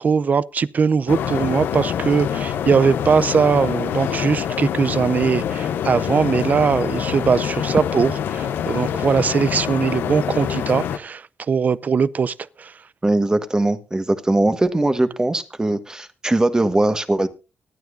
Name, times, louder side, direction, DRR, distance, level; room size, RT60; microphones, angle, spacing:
voice 1, 0.0-12.7, right 5 dB, 50° right, 0.5 m, -20 dB
sound 1, 1.1-11.0, left 9 dB, 85° left, 0.8 m, -25 dB
voice 2, 13.0-17.3, right 2 dB, 20° right, 1.5 m, -20 dB
24.5 x 9.4 x 2.6 m
cardioid pair, 65°, 4 cm